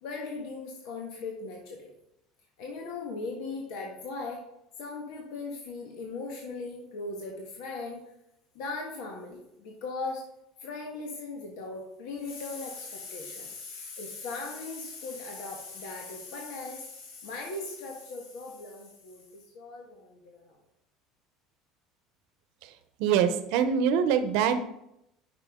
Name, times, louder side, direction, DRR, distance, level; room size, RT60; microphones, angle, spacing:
voice 1, 0.0-1.9 2.6-4.4 4.8-8.0 8.5-10.2 10.6-20.5, left 3 dB, 65° left, -1 dB, 1.5 m, -38 dB
voice 2, 23.0-24.6, right 8 dB, 65° right, 10 dB, 0.8 m, -24 dB
9.2 x 6.0 x 3.8 m, 0.82 s
cardioid pair, 165°, 0 cm